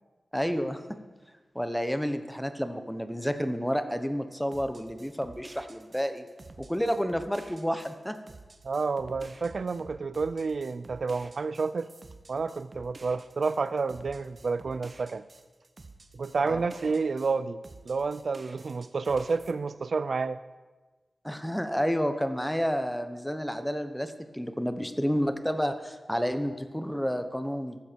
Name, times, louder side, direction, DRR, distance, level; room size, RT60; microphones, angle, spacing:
voice 1, 0.3-0.8 1.5-6.2 6.6-8.2 16.4-16.6 21.2-27.8, equal, 5° left, 9 dB, 0.9 m, -30 dB
sound 1, 4.5-17.3 17.6-19.5, right 3 dB, 45° right, 1.0 m, -51 dB
voice 2, 8.6-11.9 12.3-15.2 16.2-17.6 17.9-20.4, right 4 dB, 65° right, 14 dB, 0.4 m, -30 dB
15.0 x 12.5 x 4.6 m, 1.3 s
wide cardioid pair, 125°, 0 cm